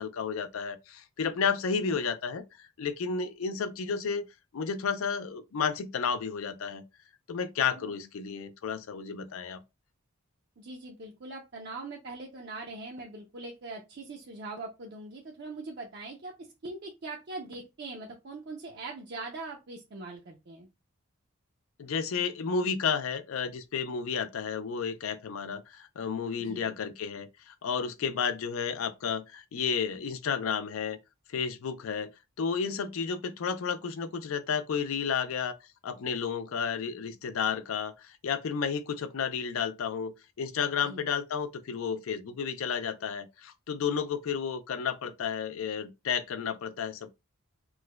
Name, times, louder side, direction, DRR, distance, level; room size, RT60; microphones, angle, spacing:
voice 1, 0.0-4.3 4.5-6.8 7.3-9.6 21.8-31.0 31.3-32.1 32.4-35.6 35.8-47.2, left 6 dB, 70° left, 0.4 m, -32 dB
voice 2, 7.7-8.0 10.6-20.7 26.4-26.7 40.8-41.0, right 3 dB, 50° right, 0.5 m, -42 dB
4.5 x 2.1 x 2.2 m
head